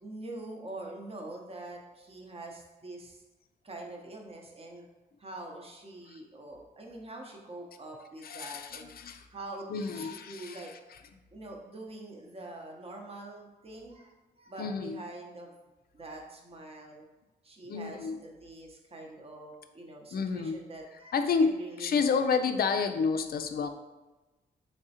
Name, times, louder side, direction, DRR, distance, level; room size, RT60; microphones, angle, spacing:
voice 1, 0.0-3.2 3.6-4.9 5.2-8.9 9.3-10.7 11.3-14.1 14.4-15.5 15.9-17.0 17.4-22.3, right 2 dB, 35° right, 1 dB, 0.7 m, -44 dB
voice 2, 8.2-9.3 9.7-11.0 14.6-15.0 17.7-18.2 20.1-20.6 21.1-23.7, left 5 dB, 60° left, 8 dB, 0.4 m, -30 dB
3.5 x 3.2 x 2.8 m, 1.1 s
cardioid pair, 55°, 18 cm